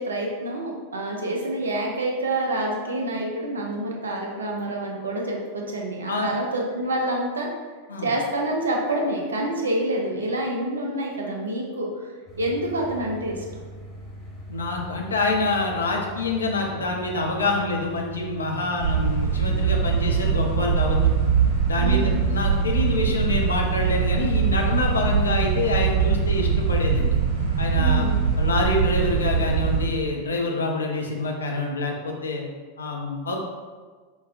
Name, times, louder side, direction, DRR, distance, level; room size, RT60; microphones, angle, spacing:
voice 1, 0.0-7.5 8.0-11.9 12.4-13.4 21.8-22.2 27.8-28.2, right 1 dB, 70° right, 0 dB, 0.6 m, -27 dB
voice 2, 6.1-6.4 7.9-8.1 14.5-21.1 21.7-27.2 27.6-28.1 28.4-32.4 32.8-33.4, left 2 dB, 70° left, 0 dB, 0.5 m, -26 dB
sound 1, 12.3-26.9, equal, 10° right, 1.1 m, -41 dB
sound 2, 18.8-29.8, right 6 dB, 55° right, 0.9 m, -22 dB
5.1 x 2.2 x 2.4 m, 1.5 s
figure-of-eight pair, 90°, 0 cm